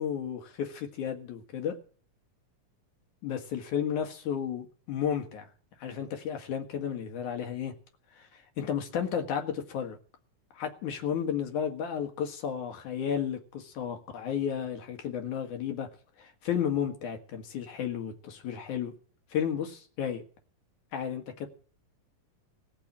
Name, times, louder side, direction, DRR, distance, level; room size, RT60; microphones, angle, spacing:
voice 1, 0.0-1.8 3.2-5.5 5.8-7.7 8.2-10.0 10.5-15.9 16.2-18.9 19.3-20.2 20.9-21.5, left 8 dB, 75° left, 5 dB, 3.2 m, -33 dB
18.0 x 6.9 x 8.6 m, 0.43 s
omnidirectional pair, 3.5 m